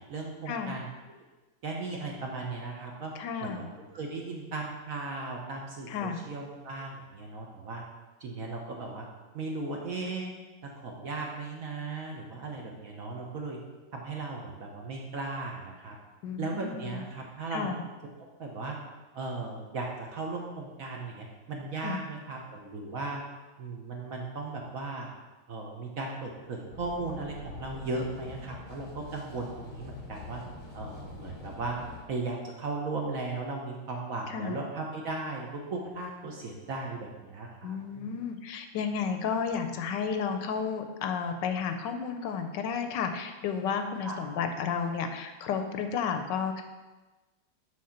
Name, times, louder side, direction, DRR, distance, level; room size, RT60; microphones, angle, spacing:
voice 1, 0.1-0.9 1.6-3.1 3.4-3.7 3.9-7.8 8.2-9.1 9.3-10.3 10.7-13.6 13.9-16.0 16.4-17.7 18.4-18.8 19.1-23.2 23.6-25.1 25.5-30.4 30.7-31.8 32.1-38.1 44.0-44.2, right 3 dB, 55° right, 0 dB, 1.0 m, -36 dB
voice 2, 3.2-3.6 5.9-6.2 16.2-17.0 17.5-17.8 21.8-22.0 34.3-34.6 37.6-46.6, left 6 dB, 75° left, 7 dB, 1.2 m, -32 dB
sound 1, 26.7-32.0, left 4 dB, 25° left, 0.8 m, -46 dB
6.4 x 4.0 x 5.7 m, 1.2 s
omnidirectional pair, 2.1 m